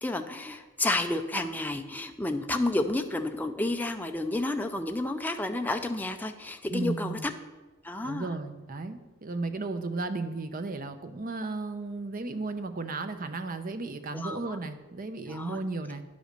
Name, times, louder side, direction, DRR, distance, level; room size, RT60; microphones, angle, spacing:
voice 1, 0.0-7.3 7.8-8.3 14.1-14.6 15.3-15.6, left 2 dB, 10° left, 5 dB, 0.5 m, -31 dB
voice 2, 6.7-7.3 8.0-16.0, right 3 dB, 40° right, 8 dB, 0.7 m, -34 dB
10.0 x 5.1 x 6.6 m, 1.1 s
head